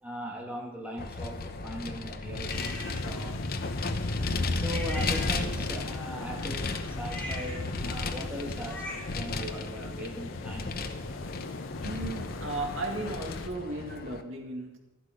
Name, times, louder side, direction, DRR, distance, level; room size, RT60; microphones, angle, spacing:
voice 1, 0.0-3.4 4.5-11.1 11.4-11.5, equal, 5° right, -1 dB, 2.2 m, -40 dB
Vehicle, 1.0-14.2, left 3 dB, 50° left, 1.0 m, -34 dB
sound 1, 2.4-3.0 4.7-5.8 7.0-9.3, left 1 dB, 10° left, 2.9 m, -41 dB
sound 2, 2.5-13.5, left 3 dB, 90° left, 0.7 m, -42 dB
voice 2, 11.8-14.8, right 2 dB, 80° right, 2 dB, 2.3 m, -36 dB
13.5 x 11.5 x 5.3 m, 1.0 s
head